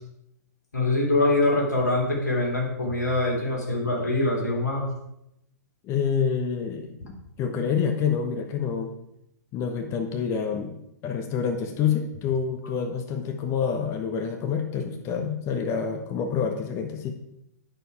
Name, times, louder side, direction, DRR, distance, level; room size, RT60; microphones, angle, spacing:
voice 1, 0.7-4.9 7.0-7.1, left 2 dB, 75° left, -2 dB, 3.2 m, -24 dB
voice 2, 5.8-7.0 7.4-8.9 9.5-10.8 11.0-17.1, left 6 dB, 30° left, 5 dB, 1.0 m, -27 dB
9.2 x 6.8 x 4.8 m, 0.81 s
figure-of-eight pair, 105°, 9 cm